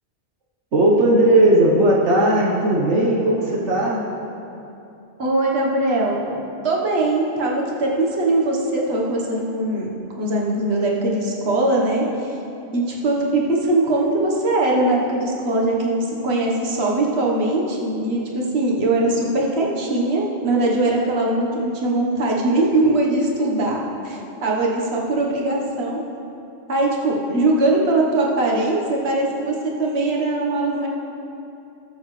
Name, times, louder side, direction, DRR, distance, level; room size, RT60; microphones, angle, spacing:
voice 1, 0.7-4.0, right 1 dB, 85° right, -3 dB, 1.5 m, -17 dB
voice 2, 5.2-9.9 10.2-12.3 12.7-26.0 26.7-30.9, right 2 dB, 65° right, -2 dB, 1.6 m, -21 dB
19.5 x 6.8 x 3.2 m, 2.8 s
omnidirectional pair, 1.2 m